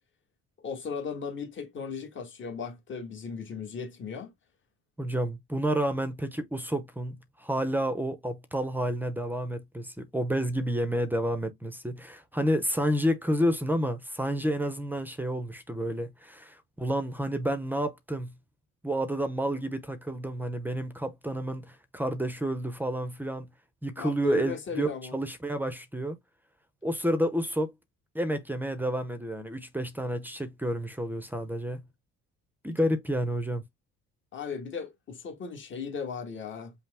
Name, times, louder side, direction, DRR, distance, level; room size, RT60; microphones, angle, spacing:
voice 1, 0.6-4.3 24.0-25.2 34.3-36.7, left 6 dB, 40° left, 1.3 m, -36 dB
voice 2, 5.0-18.3 18.8-23.5 23.8-26.2 26.8-27.7 28.1-31.8 32.6-33.6, equal, 5° right, 0.6 m, -30 dB
5.6 x 2.0 x 3.4 m
cardioid pair, 150°, 30 cm